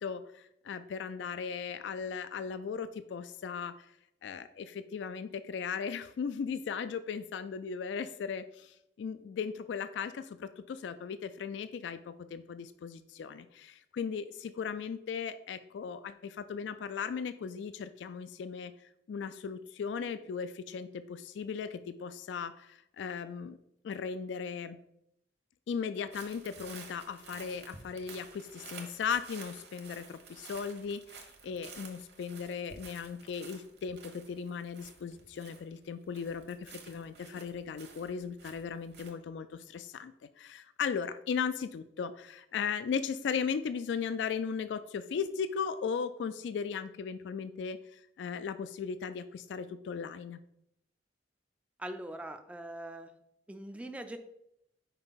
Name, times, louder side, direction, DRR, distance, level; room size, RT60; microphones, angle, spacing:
voice 1, 0.0-3.9 4.2-18.7 19.1-23.6 23.8-24.8 25.7-50.4, left 6 dB, 70° left, 12 dB, 0.3 m, -37 dB
sound 1, 26.1-35.9 36.1-39.1, right 5 dB, 60° right, 1.1 m, -51 dB
voice 2, 51.8-53.1 53.5-54.2, right 1 dB, 5° right, 7 dB, 0.3 m, -42 dB
5.5 x 4.8 x 4.0 m, 0.78 s
head